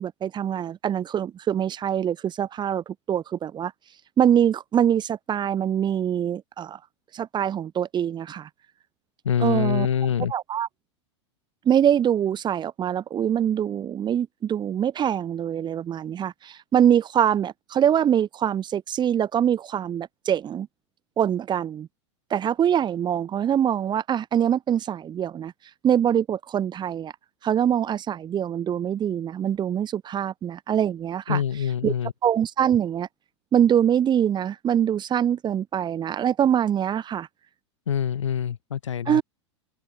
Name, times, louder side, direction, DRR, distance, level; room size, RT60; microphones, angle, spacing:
voice 1, 0.0-3.7 4.2-6.8 7.1-8.5 9.4-9.9 10.3-10.7 11.7-20.7 21.2-21.9 22.3-25.5 25.8-27.1 27.4-31.4 31.8-31.9 32.2-33.1 33.5-37.3 39.1-39.2, right 9 dB, 30° right, 5.5 m, -24 dB
voice 2, 9.2-10.3 31.3-32.1 37.9-39.2, left 8 dB, 85° left, 5.3 m, -25 dB
open air
hypercardioid pair, 100°, 15 cm